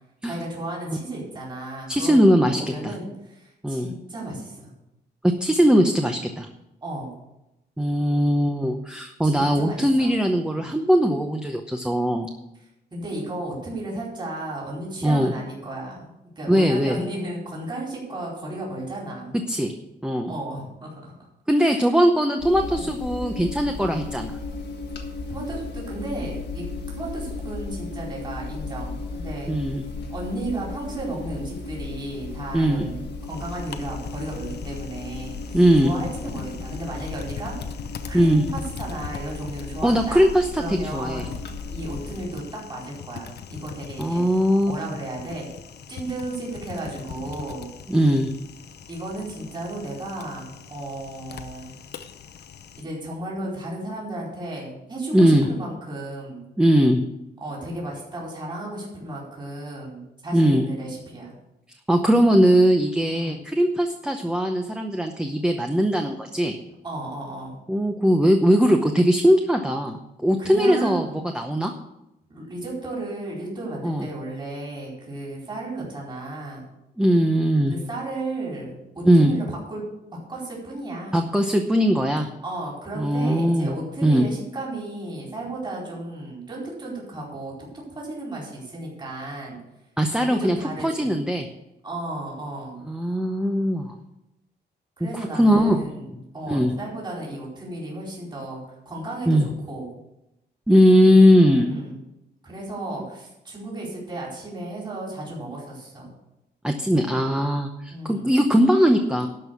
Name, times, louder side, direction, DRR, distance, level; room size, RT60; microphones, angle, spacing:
voice 1, 0.3-4.7 6.8-7.1 9.2-10.2 10.5-10.7 12.9-19.4 20.3-21.2 21.6-21.9 22.7-22.9 23.8-24.0 25.3-26.7 27.0-29.5 30.1-37.6 38.1-40.3 40.6-41.3 41.7-44.2 44.7-45.5 45.9-47.7 48.9-51.7 52.8-56.4 57.4-61.4 63.1-63.4 66.8-67.6 70.4-71.2 72.3-76.7 77.7-79.8 80.1-81.2 82.4-87.5 88.0-89.6 90.2-91.1 91.8-92.9 95.0-96.1 96.3-98.6 98.9-99.9 101.5-102.0 102.4-106.1 107.9-108.3, right 2 dB, 25° right, -4 dB, 4.4 m, -34 dB
voice 2, 1.9-2.9 3.6-3.9 5.2-6.5 7.8-12.3 15.0-15.3 16.5-17.0 19.5-19.7 20.0-20.3 21.5-24.3 29.5-29.8 32.5-32.9 35.5-35.9 38.1-38.4 39.8-41.3 44.0-44.7 47.9-48.3 55.1-55.5 56.6-57.0 60.3-60.7 61.9-66.6 67.7-71.1 71.3-71.7 73.8-74.1 77.0-77.7 79.0-79.3 81.1-82.3 83.0-84.3 90.0-90.6 90.8-91.5 92.9-93.9 95.3-95.8 96.1-96.2 96.5-96.7 99.3-99.5 100.7-101.7 106.6-109.3, equal, 5° right, 4 dB, 0.8 m, -20 dB
sound 1, 22.4-42.3, left 3 dB, 85° left, 1.6 m, -35 dB
Typing, 33.2-52.8, left 8 dB, 70° left, 0.9 m, -42 dB
12.5 x 5.5 x 8.3 m, 0.88 s
wide cardioid pair, 140°, 18 cm